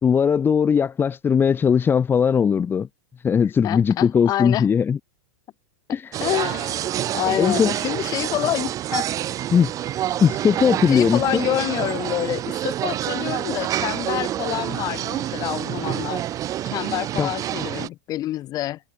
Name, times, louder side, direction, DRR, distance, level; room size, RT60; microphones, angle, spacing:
voice 1, 0.0-2.9 3.2-5.0 5.9-6.2 7.4-7.7 9.5-9.7 10.0-11.2 17.2-17.3, left 7 dB, 20° left, 1.6 m, -19 dB
voice 2, 3.6-4.7 6.2-6.8 7.1-9.1 10.9-16.2 16.7-18.8, left 14 dB, 35° left, 3.5 m, -27 dB
sound 1, 6.1-17.9, right 12 dB, 30° right, 1.8 m, -27 dB
hypercardioid pair, 110°, 11 cm